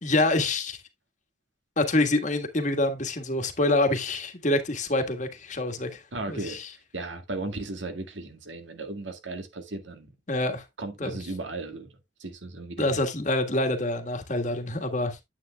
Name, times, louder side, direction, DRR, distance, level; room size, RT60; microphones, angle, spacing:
voice 1, 0.0-0.8 1.8-6.0 6.3-6.7 10.3-10.6 11.0-11.2 12.8-15.2, left 2 dB, 40° left, 1.6 m, -26 dB
voice 2, 6.1-6.6 6.9-10.1 10.8-11.9 12.2-12.9, right 2 dB, 90° right, 1.9 m, -36 dB
9.1 x 8.7 x 2.3 m
head